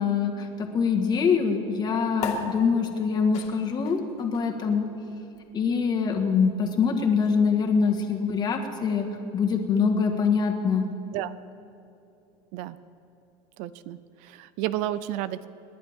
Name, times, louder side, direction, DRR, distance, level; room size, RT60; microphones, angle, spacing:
voice 1, 0.0-4.9 5.5-9.1 9.3-10.9, left 5 dB, 30° left, 3 dB, 1.7 m, -24 dB
sound 1, 2.2-9.0, left 5 dB, 55° left, 2.2 m, -41 dB
voice 2, 13.6-15.5, right 13 dB, 65° right, 15 dB, 0.6 m, -32 dB
28.0 x 11.0 x 3.7 m, 2.9 s
supercardioid pair, 135°, 14 cm